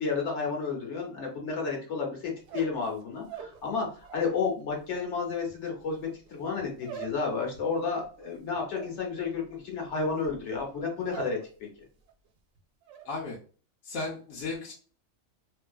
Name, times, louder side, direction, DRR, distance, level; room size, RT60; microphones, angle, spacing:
voice 1, 0.0-11.4, left 4 dB, 60° left, 0 dB, 1.0 m, -31 dB
sound 1, 2.4-4.4 4.7-11.5 11.8-12.3 12.6-13.1, right 9 dB, 70° right, 0.8 m, -45 dB
voice 2, 13.0-13.4 13.8-14.7, left 3 dB, 85° left, -3 dB, 1.0 m, -35 dB
2.6 x 2.3 x 2.3 m, 0.39 s
omnidirectional pair, 1.4 m